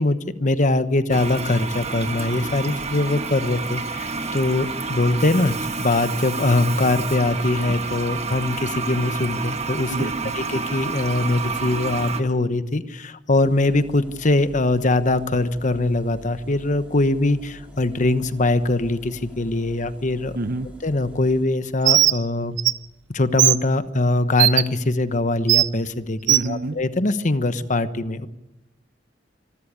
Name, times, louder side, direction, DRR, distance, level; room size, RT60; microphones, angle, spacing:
voice 1, 0.0-10.1 10.3-20.4 20.8-22.6 23.1-28.3, left 2 dB, 45° left, 12 dB, 1.1 m, -22 dB
Toilet flush, 1.1-12.2, right 4 dB, 35° right, 1.5 m, -29 dB
voice 2, 9.9-10.3 20.3-20.7 26.3-26.8, right 2 dB, 55° right, 15 dB, 0.8 m, -28 dB
sound 1, 13.3-21.4, equal, 5° right, 4.5 m, -45 dB
Bird, 21.8-22.2 22.6-22.7 23.4-23.6 24.4-24.6 25.5-25.7 26.3-26.5, right 14 dB, 90° right, 0.7 m, -16 dB
25.5 x 13.5 x 8.7 m, 0.95 s
head